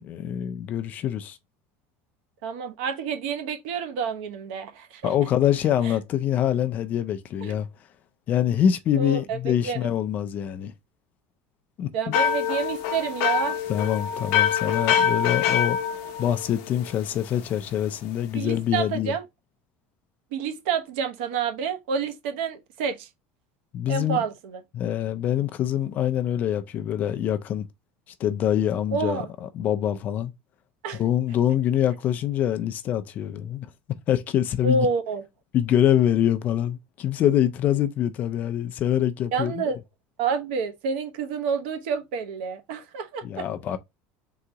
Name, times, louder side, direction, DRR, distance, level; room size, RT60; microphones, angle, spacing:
voice 1, 0.0-1.4 5.0-7.7 8.3-10.7 11.8-12.2 13.7-15.8 16.2-19.1 23.7-24.2 24.7-27.7 28.2-30.3 30.9-33.7 34.1-34.9 35.5-39.5 43.2-43.8, left 10 dB, 30° left, 0.4 m, -25 dB
voice 2, 2.4-5.1 5.8-5.9 7.4-7.6 9.0-9.9 11.9-13.6 18.3-19.2 20.3-23.1 23.9-24.6 28.9-29.3 30.8-31.0 34.6-35.2 39.3-39.8 40.2-43.5, right 5 dB, 75° right, 0.9 m, -28 dB
sound 1, 12.1-17.0, left 8 dB, 55° left, 0.8 m, -25 dB
3.9 x 2.8 x 4.5 m
cardioid pair, 175°, 6 cm